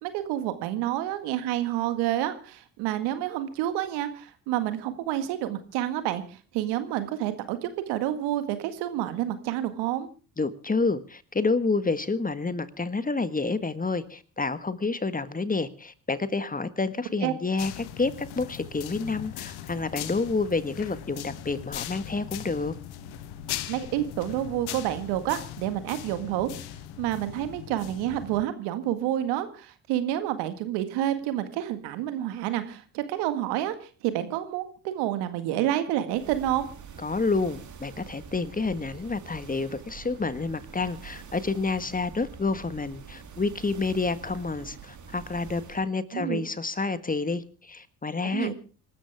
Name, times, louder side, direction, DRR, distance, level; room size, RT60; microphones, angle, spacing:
voice 1, 0.0-10.1 17.2-17.3 23.7-26.5 27.0-36.7 46.1-46.4 48.3-48.5, right 12 dB, 75° right, 10 dB, 1.9 m, -29 dB
voice 2, 10.4-22.7 37.0-48.5, left 3 dB, 20° left, 13 dB, 1.6 m, -29 dB
sound 1, 17.6-28.4, left 11 dB, 70° left, 1.3 m, -39 dB
sound 2, 36.1-45.9, right 6 dB, 45° right, 2.8 m, -45 dB
26.0 x 13.0 x 3.5 m, 0.35 s
hypercardioid pair, 55°, 40 cm